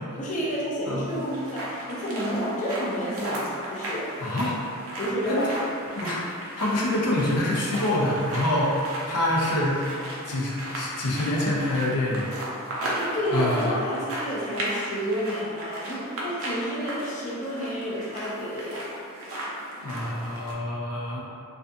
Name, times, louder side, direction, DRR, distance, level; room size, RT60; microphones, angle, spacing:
voice 1, 0.2-4.1 5.0-5.7 13.0-18.9, equal, 35° left, -5 dB, 0.4 m, -30 dB
sound 1, 1.1-20.5, right 1 dB, 60° right, 0.5 m, -35 dB
voice 2, 4.2-4.5 5.3-5.5 6.0-6.2 6.6-8.7 9.0-9.8 10.3-12.3 13.3-13.8 19.8-21.2, left 1 dB, 85° left, -4 dB, 0.5 m, -26 dB
2.4 x 2.2 x 2.6 m, 2.4 s
head